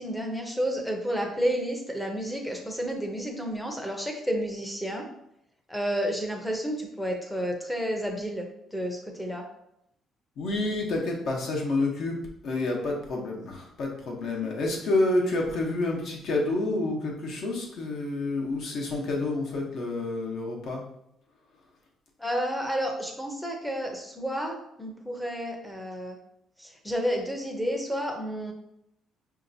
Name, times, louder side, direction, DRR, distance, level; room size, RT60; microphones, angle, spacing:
voice 1, 0.0-5.0 5.7-9.4 22.2-26.2 26.6-28.5, equal, 5° left, 1 dB, 0.6 m, -31 dB
voice 2, 10.4-12.2 12.4-20.8, left 2 dB, 55° left, 0 dB, 1.0 m, -28 dB
5.7 x 2.8 x 2.7 m, 0.78 s
cardioid pair, 165°, 0 cm